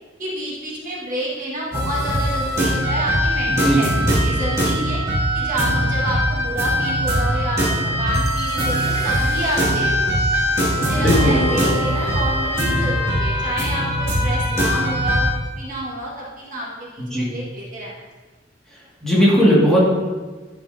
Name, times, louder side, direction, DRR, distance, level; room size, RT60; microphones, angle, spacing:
voice 1, 0.2-3.9 4.2-5.0 5.3-10.2 10.8-15.3 15.5-17.9, right 1 dB, 45° right, -5 dB, 1.6 m, -29 dB
sound 1, 1.7-15.3, equal, 15° right, 2.4 m, -21 dB
voice 2, 3.5-3.8 10.9-11.6 17.0-17.3 19.0-19.9, equal, 5° left, -8 dB, 1.9 m, -17 dB
sound 2, 8.1-14.1, left 1 dB, 20° left, 0.7 m, -33 dB
11.0 x 6.3 x 2.7 m, 1.3 s
head